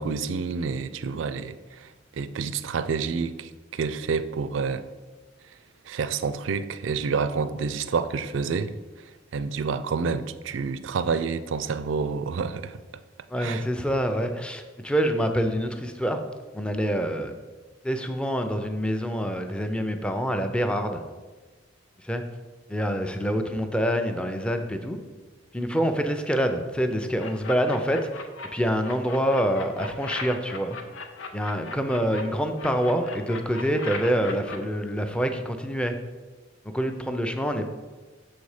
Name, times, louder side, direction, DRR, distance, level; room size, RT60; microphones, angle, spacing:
voice 1, 0.0-1.9 2.2-4.8 5.9-8.7 9.3-12.8 13.4-13.6, right 5 dB, 80° right, 13 dB, 0.4 m, -28 dB
voice 2, 13.3-16.3 16.5-17.3 17.8-21.0 22.0-22.2 22.7-25.0 25.5-28.0 28.5-30.8 31.3-35.9 36.7-37.7, equal, 5° left, 6 dB, 0.4 m, -26 dB
sound 1, 27.2-28.5 28.8-32.2 32.6-34.6, left 4 dB, 90° left, 0.7 m, -37 dB
6.5 x 4.1 x 4.8 m, 1.3 s
head